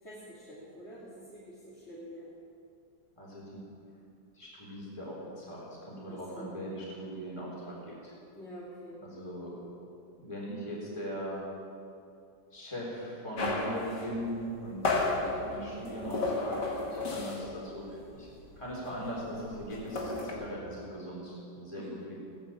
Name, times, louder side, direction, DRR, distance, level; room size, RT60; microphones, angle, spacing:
voice 1, 0.0-2.3 6.1-6.5 8.3-9.0 21.8-21.9, equal, 40° left, -8 dB, 2.8 m, -47 dB
voice 2, 3.2-3.6 4.3-8.1 9.0-9.6 10.2-11.4 12.5-18.3 18.6-22.2, equal, 15° left, -5 dB, 3.8 m, -40 dB
sound 1, 13.4-17.6 17.9-18.1 18.4-20.3, left 3 dB, 90° left, 2.5 m, -33 dB
16.5 x 11.0 x 7.5 m, 2.5 s
omnidirectional pair, 1.8 m